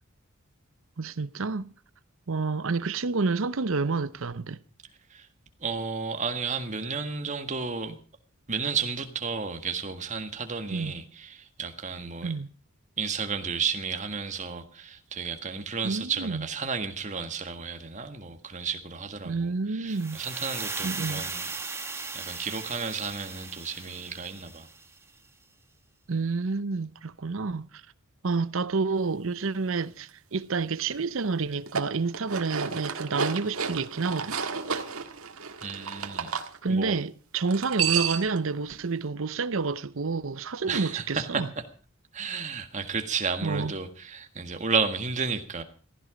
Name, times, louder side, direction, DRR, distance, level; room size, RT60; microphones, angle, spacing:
voice 1, 1.0-1.7 2.3-4.6 10.7-10.9 12.2-12.5 15.8-16.5 19.2-20.2 20.8-21.3 26.1-27.7 28.2-34.4 36.6-41.5 43.4-43.7, right 4 dB, 65° right, 0.7 m, -29 dB
voice 2, 5.6-8.0 8.5-12.3 13.0-21.5 22.1-24.7 35.6-36.4 36.7-36.9 40.7-41.6 42.1-45.6, right 5 dB, 35° right, 1.7 m, -32 dB
sound 1, 19.9-25.0, right 4 dB, 10° right, 1.2 m, -37 dB
sound 2, 31.5-36.5 37.5-38.4, right 6 dB, 85° right, 1.7 m, -31 dB
15.5 x 15.5 x 5.1 m
head